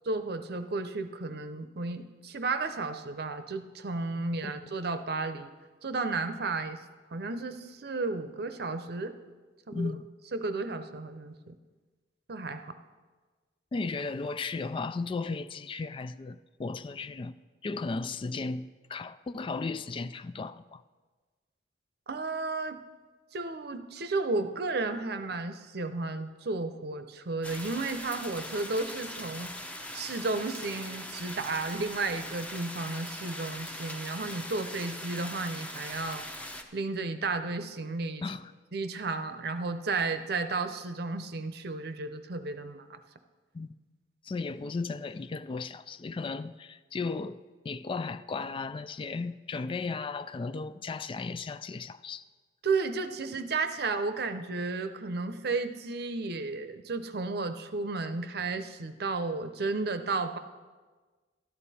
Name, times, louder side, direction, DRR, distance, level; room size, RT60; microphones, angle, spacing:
voice 1, 0.1-5.5 5.8-6.8 7.1-9.2 9.7-9.9 10.3-11.5 12.3-12.8 22.1-22.8 23.3-29.5 29.9-38.2 38.7-43.0 52.6-60.4, right 3 dB, 65° right, 0.7 m, -33 dB
voice 2, 4.2-4.7 9.7-10.1 13.7-20.8 38.2-38.5 43.5-43.7 44.2-52.2, left 4 dB, 30° left, 0.3 m, -35 dB
sound 1, 27.4-36.6, left 1 dB, 10° left, 0.8 m, -41 dB
13.0 x 11.0 x 4.2 m
head